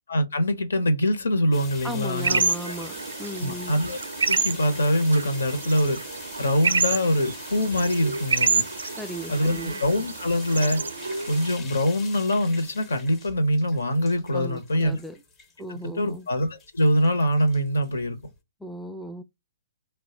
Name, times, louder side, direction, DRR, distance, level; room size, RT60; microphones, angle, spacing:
voice 1, 0.1-2.7 3.4-4.0 4.3-6.0 6.4-8.6 9.3-10.8 11.3-15.0 15.7-18.2, equal, 80° left, 0.9 m, -24 dB
sound 1, 1.5-18.4, left 4 dB, 20° left, 0.8 m, -44 dB
voice 2, 1.8-3.8 9.0-9.8 14.3-15.2 15.6-16.3 18.6-19.2, equal, ahead, 0.3 m, -36 dB
sound 2, 2.2-11.6, right 4 dB, 80° right, 0.4 m, -28 dB
3.1 x 2.3 x 4.2 m
hypercardioid pair, 135°, 0 cm